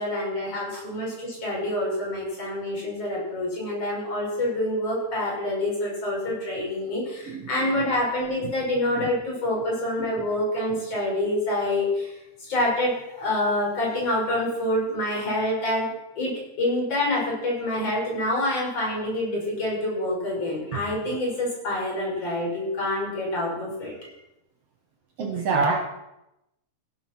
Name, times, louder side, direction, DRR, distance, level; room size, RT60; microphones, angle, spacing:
voice 1, 0.0-12.1 12.4-16.3 16.6-24.1, left 1 dB, 50° left, -4 dB, 7.0 m, -27 dB
voice 2, 7.3-7.8 9.0-9.1 10.0-10.1 20.7-20.8 25.2-25.8, right 4 dB, 60° right, 4 dB, 2.1 m, -27 dB
16.0 x 9.1 x 6.1 m, 0.89 s
omnidirectional pair, 3.5 m